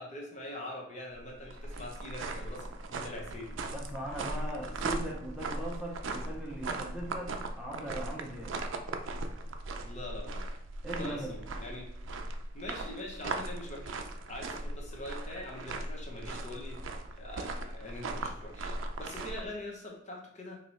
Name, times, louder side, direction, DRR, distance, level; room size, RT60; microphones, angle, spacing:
voice 1, 0.0-3.6 9.8-10.5 10.9-11.9 12.5-20.6, left 1 dB, 40° left, -1 dB, 0.8 m, -43 dB
sound 1, 1.1-19.4, right 2 dB, 85° right, 0.4 m, -38 dB
voice 2, 3.7-8.5 10.8-11.4, right 1 dB, 5° right, -3 dB, 0.5 m, -39 dB
3.0 x 2.7 x 4.1 m, 0.82 s
head